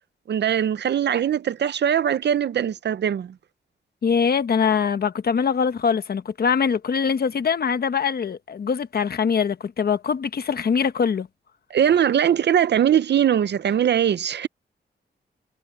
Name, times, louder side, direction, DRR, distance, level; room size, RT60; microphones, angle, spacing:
voice 1, 0.3-3.3 11.7-14.5, right 9 dB, 65° right, 0.5 m, -21 dB
voice 2, 4.0-11.3, left 6 dB, 55° left, 1.1 m, -23 dB
wide cardioid pair, 160°, 19 cm